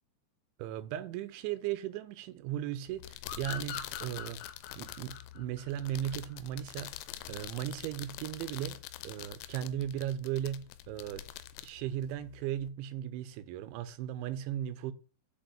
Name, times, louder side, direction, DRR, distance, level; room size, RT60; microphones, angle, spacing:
voice 1, 0.6-4.4 4.8-6.9 7.3-11.2 11.6-14.9, right 11 dB, 80° right, 3.0 m, -37 dB
sound 1, 2.9-12.7, left 13 dB, 85° left, 3.0 m, -46 dB
sound 2, 3.2-6.6, left 8 dB, 70° left, 3.1 m, -43 dB
6.9 x 5.1 x 7.1 m
omnidirectional pair, 5.5 m